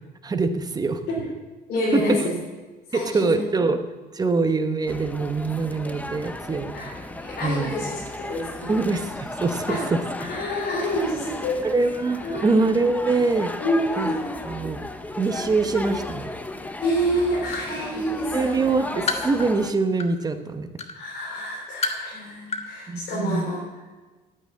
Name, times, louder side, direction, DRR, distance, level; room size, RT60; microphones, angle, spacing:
voice 1, 0.2-1.0 1.9-2.0 2.9-3.8 4.1-6.7 7.4-7.7 8.7-10.0 11.6-13.5 14.0-14.1 14.4-14.8 15.2-16.3 18.3-20.7 22.9-23.5, right 3 dB, 20° right, 8 dB, 1.0 m, -24 dB
voice 2, 1.7-2.3 2.9-3.4 6.7-8.8 9.7-9.8 10.2-11.9 12.2-12.5 13.6-14.4 16.8-18.7 20.9-23.6, equal, 60° left, -5 dB, 4.0 m, -28 dB
sound 1, 4.9-19.7, left 1 dB, 10° left, 0.8 m, -35 dB
sound 2, 16.4-16.6 17.0-17.8 18.2-20.3 20.8-20.9 21.5-22.1 22.5-22.7 22.9-23.0, left 4 dB, 35° left, 1.3 m, -30 dB
9.1 x 9.0 x 9.7 m, 1.3 s
cardioid pair, 130°, 19 cm